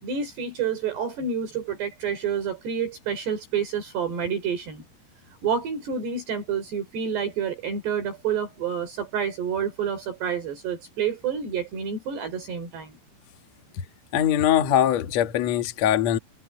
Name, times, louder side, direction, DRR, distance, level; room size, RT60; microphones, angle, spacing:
voice 1, 0.0-4.8 5.4-13.0, right 7 dB, 60° right, 5.7 m, -29 dB
voice 2, 14.1-16.2, left 10 dB, 70° left, 1.6 m, -22 dB
omnidirectional pair, 5.6 m